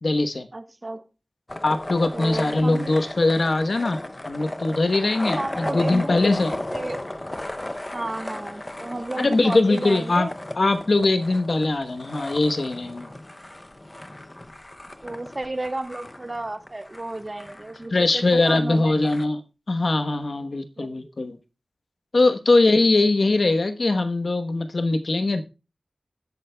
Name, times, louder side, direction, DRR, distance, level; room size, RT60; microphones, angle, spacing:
voice 1, 0.0-0.5 1.6-6.5 9.2-10.3 10.6-13.1 17.9-19.4 19.7-21.4 22.1-25.4, left 2 dB, 60° left, 1.1 m, -21 dB
voice 2, 0.5-1.0 2.1-3.0 5.3-6.2 6.7-7.1 7.9-10.3 15.0-19.1 20.8-21.2, right 2 dB, 35° right, 1.2 m, -32 dB
sound 1, 1.5-19.2, left 1 dB, 25° left, 0.7 m, -35 dB
19.5 x 8.3 x 2.3 m
wide cardioid pair, 70°, 0 cm